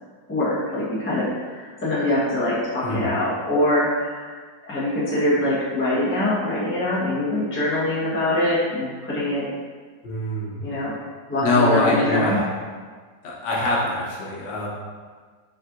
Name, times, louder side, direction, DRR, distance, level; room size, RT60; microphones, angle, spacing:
voice 1, 0.3-4.3 4.7-9.5 10.6-10.9 11.3-12.4, left 1 dB, 10° left, -9 dB, 0.5 m, -23 dB
voice 2, 10.0-10.7 11.4-12.5 13.2-14.7, left 2 dB, 75° left, -4 dB, 1.5 m, -23 dB
4.4 x 3.6 x 2.4 m, 1.5 s
omnidirectional pair, 2.0 m